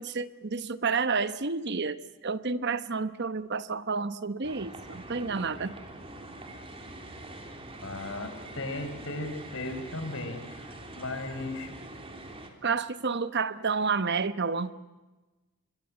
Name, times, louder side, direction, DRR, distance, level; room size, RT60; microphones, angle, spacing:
voice 1, 0.0-5.7 12.6-14.7, right 4 dB, 55° right, 13 dB, 1.1 m, -30 dB
sound 1, 4.4-12.5, right 1 dB, 25° right, 3.3 m, -44 dB
voice 2, 7.8-10.4 10.9-11.7, left 2 dB, 65° left, 7 dB, 4.9 m, -36 dB
26.0 x 24.0 x 8.7 m, 1.2 s
head